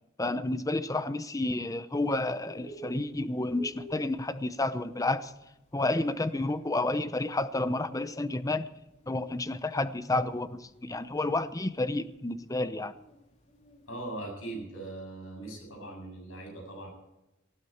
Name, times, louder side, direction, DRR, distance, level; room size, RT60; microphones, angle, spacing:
voice 1, 0.2-5.3 5.7-8.7 9.1-12.9, left 2 dB, 15° left, 13 dB, 0.7 m, -30 dB
Bird, 1.9-14.1, right 3 dB, 35° left, 3.0 m, -52 dB
voice 2, 13.9-16.9, right 2 dB, 80° left, 1 dB, 7.6 m, -40 dB
19.0 x 14.5 x 4.4 m, 0.95 s
head